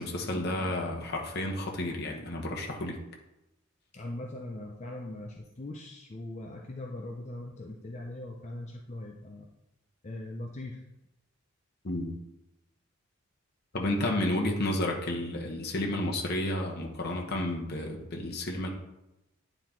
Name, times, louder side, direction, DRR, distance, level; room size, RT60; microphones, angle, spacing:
voice 1, 0.0-3.0 11.8-12.1 13.7-18.7, left 1 dB, 45° left, 0 dB, 1.0 m, -31 dB
voice 2, 3.9-9.5 10.0-10.8, left 1 dB, 30° left, 0 dB, 0.5 m, -40 dB
9.3 x 4.0 x 4.3 m, 0.94 s
head